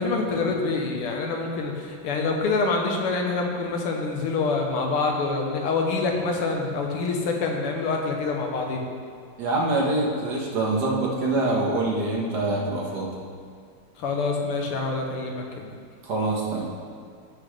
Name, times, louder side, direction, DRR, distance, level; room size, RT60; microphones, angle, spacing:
voice 1, 0.0-8.8 14.0-15.7, left 3 dB, 85° left, 1 dB, 2.0 m, -26 dB
voice 2, 9.4-13.1 16.0-16.7, right 2 dB, 50° right, -3 dB, 1.9 m, -25 dB
15.0 x 6.1 x 3.3 m, 2.2 s
omnidirectional pair, 2.4 m